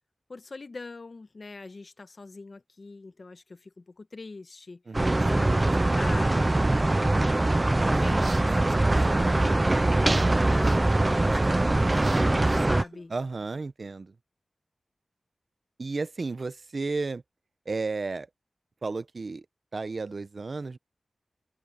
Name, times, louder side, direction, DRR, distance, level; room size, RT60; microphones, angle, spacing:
voice 1, 0.3-4.8 5.1-6.8 7.2-10.2 10.5-13.1, left 3 dB, 55° left, 1.3 m, -42 dB
sound 1, 4.9-12.8, right 2 dB, 30° right, 0.5 m, -23 dB
voice 2, 4.9-5.2 13.1-14.1 15.8-17.2 17.7-18.3 18.8-19.5 19.7-20.8, right 3 dB, 60° right, 0.8 m, -33 dB
sound 2, 7.7-13.6, right 4 dB, 75° right, 2.4 m, -47 dB
wide cardioid pair, 70°, 0 cm